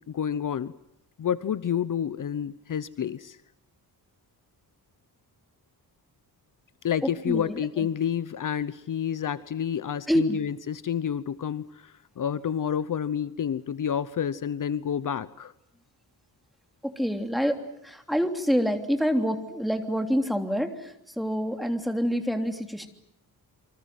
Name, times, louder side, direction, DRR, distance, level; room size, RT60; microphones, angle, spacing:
voice 1, 0.1-0.7 1.2-3.4 6.8-15.5, left 8 dB, 55° left, 15 dB, 1.0 m, -29 dB
voice 2, 7.0-7.9 10.1-10.4 16.8-22.9, equal, ahead, 6 dB, 3.2 m, -27 dB
28.5 x 24.5 x 7.8 m, 0.78 s
wide cardioid pair, 130°, 37 cm